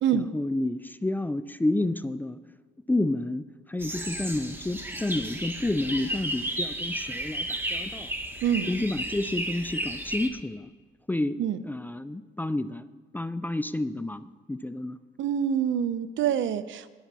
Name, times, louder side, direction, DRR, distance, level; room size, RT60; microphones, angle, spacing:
voice 1, 0.1-2.4 2.9-8.1 8.7-10.7 11.1-11.4 11.6-12.9 13.1-15.0, left 2 dB, 10° left, 14 dB, 0.4 m, -30 dB
sound 1, 3.8-10.3, right 1 dB, 10° right, 1.4 m, -33 dB
voice 2, 15.2-16.9, right 9 dB, 75° right, 14 dB, 0.7 m, -26 dB
21.0 x 7.1 x 4.1 m, 1.4 s
cardioid pair, 90°, 20 cm